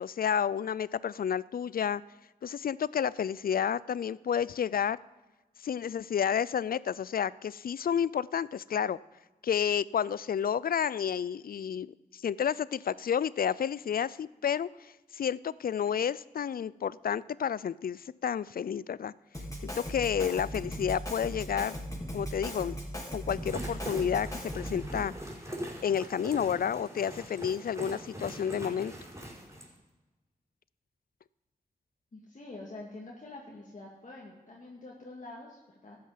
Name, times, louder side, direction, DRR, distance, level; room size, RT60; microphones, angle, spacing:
voice 1, 0.0-2.0 2.4-5.0 5.6-9.0 9.4-19.1 19.6-21.8 22.1-22.8 23.1-25.1 25.8-28.9, left 8 dB, 70° left, 20 dB, 0.4 m, -30 dB
Drum kit, 19.3-25.0, equal, 20° left, 4.1 m, -38 dB
sound 1, 23.2-29.7, equal, 20° right, 5.2 m, -42 dB
voice 2, 32.1-36.0, left 2 dB, 55° left, -3 dB, 2.1 m, -46 dB
13.5 x 9.7 x 5.8 m, 1.2 s
cardioid pair, 50°, 15 cm